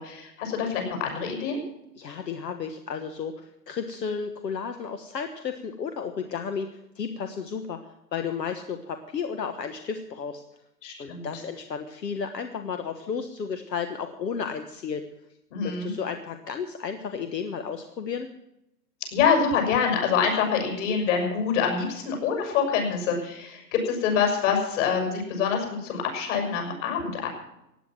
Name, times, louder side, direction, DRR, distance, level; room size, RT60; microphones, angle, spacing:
voice 1, 0.0-1.6 10.8-11.3 15.5-15.9 19.1-27.3, left 6 dB, 45° left, 3 dB, 5.9 m, -26 dB
voice 2, 2.0-7.8 8.1-10.4 11.0-15.0 15.6-18.3, left 6 dB, 75° left, 8 dB, 1.5 m, -33 dB
16.0 x 9.3 x 7.4 m, 0.85 s
hypercardioid pair, 135°, 50 cm